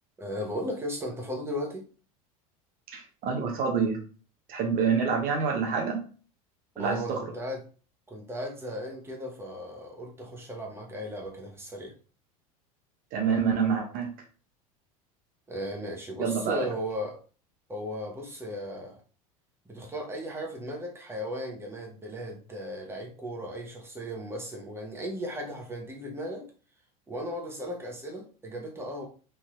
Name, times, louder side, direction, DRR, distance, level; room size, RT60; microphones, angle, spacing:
voice 1, 0.2-1.8 6.7-7.6 8.1-11.9 15.5-17.2 17.7-19.0 19.7-26.5 27.1-29.0, equal, 15° right, -1 dB, 1.0 m, -36 dB
voice 2, 2.9-4.0 4.5-6.0 6.8-7.2 13.1-14.1 16.2-16.7, right 6 dB, 50° right, 2 dB, 0.9 m, -27 dB
3.3 x 2.6 x 2.4 m, 0.38 s
hypercardioid pair, 95°, 19 cm